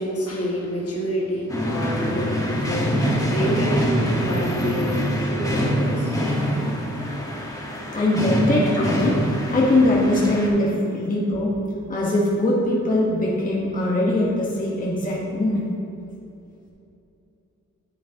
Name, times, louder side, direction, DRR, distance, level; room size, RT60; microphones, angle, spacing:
voice 1, 0.0-6.1 8.7-8.8, equal, 55° left, -3 dB, 1.6 m, -28 dB
sound 1, 1.5-10.5, equal, 10° left, 1.3 m, -24 dB
voice 2, 7.9-9.1 9.5-11.5 11.9-15.7, left 1 dB, 30° left, -5 dB, 1.2 m, -21 dB
9.8 x 7.4 x 2.8 m, 2.8 s
wide cardioid pair, 115°, 30 cm